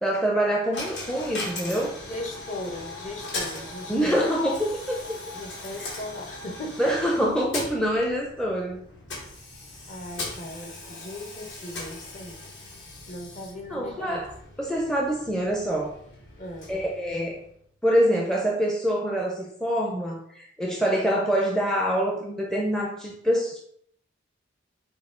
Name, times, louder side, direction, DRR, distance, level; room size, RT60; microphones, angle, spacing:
voice 1, 0.0-2.0 3.9-5.0 5.8-5.9 6.8-8.8 13.7-14.3 14.6-15.9 16.7-17.4 17.8-23.6, equal, 5° left, -2 dB, 0.5 m, -25 dB
Coin (dropping), 0.7-17.7, left 2 dB, 60° left, 1.4 m, -39 dB
voice 2, 2.0-4.4 5.3-6.8 9.9-12.4 13.1-14.2 16.4-16.7, left 1 dB, 35° left, 2 dB, 0.8 m, -38 dB
5.7 x 2.4 x 3.7 m, 0.64 s
head